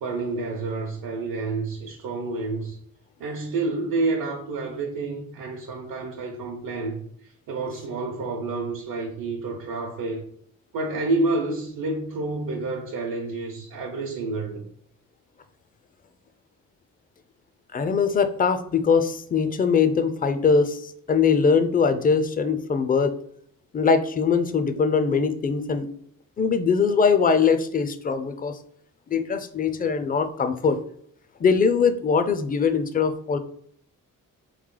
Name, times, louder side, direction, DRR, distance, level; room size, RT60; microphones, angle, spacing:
voice 1, 0.0-2.8 3.2-10.2 10.7-14.6, right 3 dB, 85° right, 0.8 m, -29 dB
voice 2, 17.7-23.1 23.7-25.9 26.4-28.6 29.1-30.8 31.4-33.4, left 5 dB, 25° left, 0.4 m, -22 dB
4.3 x 3.1 x 3.7 m
cardioid pair, 115°, 33 cm